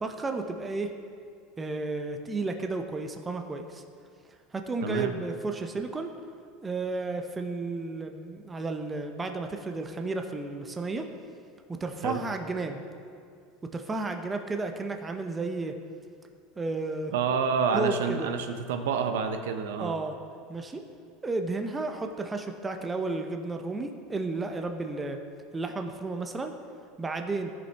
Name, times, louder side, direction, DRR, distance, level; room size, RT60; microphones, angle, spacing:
voice 1, 0.0-0.9 1.6-3.8 4.5-6.1 6.6-11.1 11.7-12.8 13.6-15.8 16.6-17.1 17.7-18.3 19.8-20.1 20.5-20.8 21.2-25.2 25.5-26.5 27.0-27.5, right 3 dB, 15° right, 5 dB, 0.6 m, -32 dB
voice 2, 4.8-5.1 12.0-12.2 17.1-19.9, right 6 dB, 90° right, 6 dB, 0.7 m, -28 dB
13.5 x 5.4 x 3.4 m, 2.3 s
supercardioid pair, 135°, 0 cm